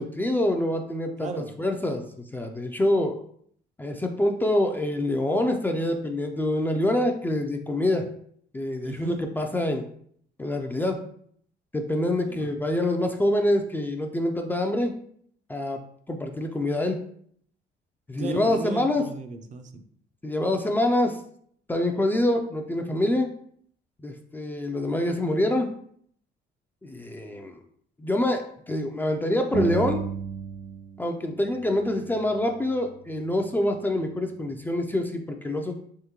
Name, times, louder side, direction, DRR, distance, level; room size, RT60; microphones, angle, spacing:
voice 1, 0.0-1.3 1.6-3.2 3.8-8.1 8.5-9.9 10.4-11.0 11.7-14.9 15.5-15.8 16.1-17.0 18.1-19.0 20.2-21.2 21.7-23.3 24.0-25.7 26.8-27.6 28.0-30.1 31.0-35.8, left 1 dB, 10° left, 3 dB, 0.3 m, -26 dB
voice 2, 1.2-1.6 8.8-9.2 12.3-12.5 18.2-19.8, right 5 dB, 45° right, 6 dB, 0.5 m, -36 dB
sound 1, 29.5-31.0 31.3-33.1, right 6 dB, 85° right, 1.2 m, -34 dB
3.6 x 3.0 x 2.9 m, 0.63 s
cardioid pair, 110°, 17 cm